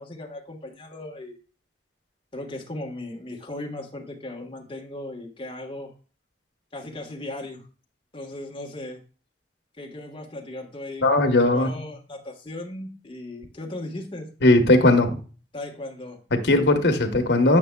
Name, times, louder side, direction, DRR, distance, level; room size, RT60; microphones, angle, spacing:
voice 1, 0.0-1.4 2.3-5.9 6.7-7.6 8.1-9.0 9.8-14.3 15.5-16.2, left 1 dB, 30° left, 1 dB, 1.3 m, -37 dB
voice 2, 11.0-11.8 14.4-15.2 16.3-17.6, left 2 dB, 75° left, 6 dB, 1.1 m, -18 dB
8.5 x 6.3 x 2.2 m, 0.37 s
head